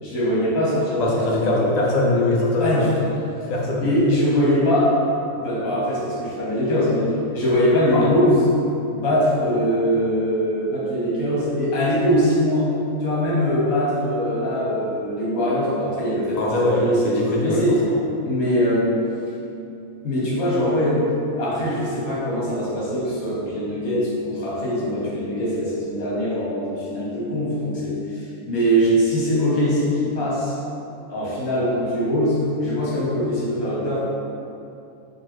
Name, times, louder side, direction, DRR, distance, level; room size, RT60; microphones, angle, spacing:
voice 1, 0.0-1.7 2.6-3.1 3.8-4.9 5.2-8.5 8.9-12.7 13.0-17.8 18.2-19.0 20.0-21.1 21.4-30.6 31.1-34.0, equal, 75° left, -7 dB, 1.6 m, -22 dB
voice 2, 1.0-2.9 3.5-3.8 7.9-8.1 16.3-18.0, left 2 dB, 55° left, -3 dB, 0.4 m, -22 dB
4.4 x 2.5 x 4.5 m, 2.8 s
omnidirectional pair, 1.5 m